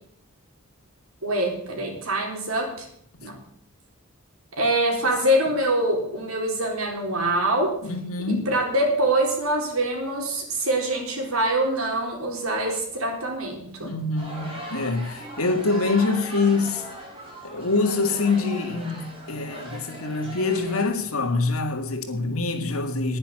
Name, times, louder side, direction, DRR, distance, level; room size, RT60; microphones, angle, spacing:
voice 1, 1.2-2.9 3.2-3.4 4.6-7.7 8.5-13.9, right 1 dB, 90° right, 4.0 m, -24 dB
voice 2, 7.8-8.5 13.8-16.9 17.4-23.2, left 3 dB, 85° left, 1.9 m, -25 dB
sound 1, 14.2-20.8, right 1 dB, 25° right, 4.8 m, -39 dB
10.5 x 10.0 x 7.7 m
head